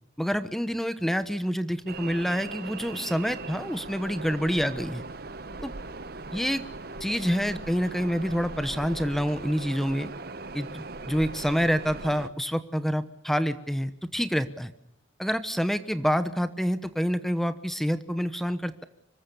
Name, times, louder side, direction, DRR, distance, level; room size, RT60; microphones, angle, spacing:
voice 1, 0.2-5.0 5.6-5.7 6.3-6.6 7.0-10.1 10.5-14.7 15.2-18.8, equal, ahead, 11 dB, 1.0 m, -27 dB
sound 1, 1.9-12.3, right 3 dB, 50° right, 1.0 m, -39 dB
26.0 x 21.5 x 7.0 m, 0.79 s
head